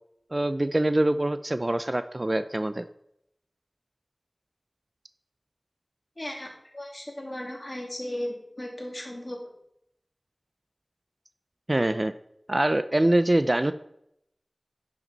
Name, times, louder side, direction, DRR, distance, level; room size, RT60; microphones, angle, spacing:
voice 1, 0.3-2.9 11.7-12.1 12.5-13.7, right 1 dB, 35° right, 12 dB, 0.4 m, -24 dB
voice 2, 6.2-6.5 6.7-9.4, left 1 dB, 35° left, 0 dB, 2.5 m, -36 dB
10.5 x 6.0 x 4.0 m, 0.76 s
wide cardioid pair, 45°, 0 cm